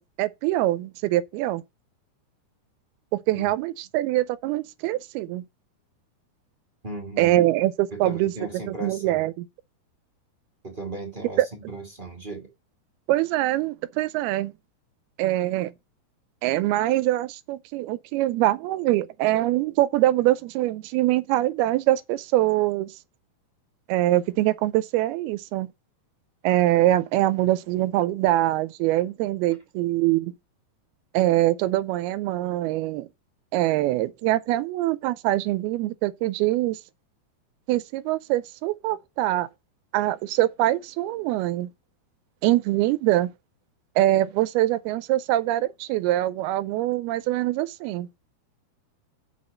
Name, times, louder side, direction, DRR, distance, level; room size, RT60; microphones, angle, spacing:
voice 1, 0.0-1.6 3.1-5.5 7.2-8.3 8.7-9.5 11.4-11.5 13.1-14.5 15.2-15.7 16.4-22.9 23.9-25.7 26.4-30.3 31.1-33.1 33.5-36.8 37.7-39.5 39.9-41.7 42.4-43.3 44.0-48.1, right 15 dB, 80° right, 2.4 m, -23 dB
voice 2, 6.8-7.4 7.9-9.2 10.6-12.5, right 2 dB, 35° right, 0.8 m, -36 dB
6.4 x 6.1 x 6.2 m
omnidirectional pair, 4.7 m